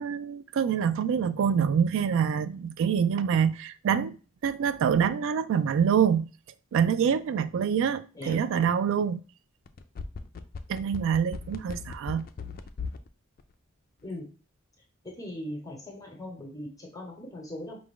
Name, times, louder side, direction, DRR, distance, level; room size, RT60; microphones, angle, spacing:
voice 1, 0.0-4.1 4.4-6.3 6.7-9.2 10.7-12.2, right 7 dB, 65° right, 0.3 m, -25 dB
sound 1, 9.7-13.1 13.4-13.5, left 5 dB, 45° left, 0.4 m, -37 dB
voice 2, 15.0-17.8, left 1 dB, 15° left, 1.0 m, -39 dB
4.9 x 2.4 x 3.6 m
head